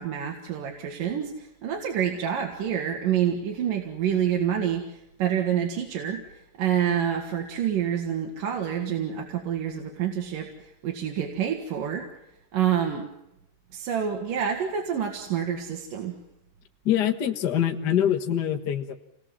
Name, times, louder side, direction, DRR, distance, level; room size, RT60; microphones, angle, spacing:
voice 1, 0.0-6.2 6.6-12.1 12.5-13.1 13.7-16.2, right 9 dB, 75° right, 1 dB, 3.5 m, -27 dB
voice 2, 16.8-18.9, left 10 dB, 55° left, 4 dB, 1.1 m, -24 dB
27.5 x 19.5 x 7.5 m, 0.84 s
omnidirectional pair, 3.9 m